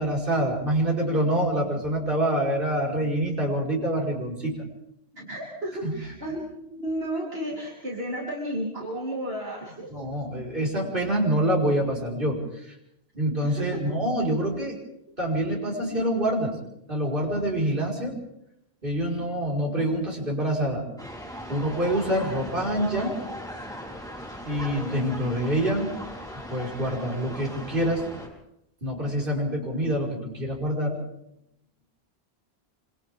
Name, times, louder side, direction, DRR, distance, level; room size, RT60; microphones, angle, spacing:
voice 1, 0.0-4.5 5.8-5.9 9.9-12.7 13.1-14.8 15.2-16.6 16.9-18.2 18.8-20.9 21.5-23.1 24.4-25.9 26.5-28.1 28.8-31.0, right 1 dB, 55° right, -2 dB, 5.6 m, -26 dB
voice 2, 5.1-9.9 13.4-13.8 15.8-16.2, right 1 dB, 70° right, -4 dB, 4.2 m, -33 dB
sound 1, 21.0-28.3, equal, 5° left, 4.0 m, -38 dB
26.5 x 26.5 x 3.8 m, 0.79 s
omnidirectional pair, 1.1 m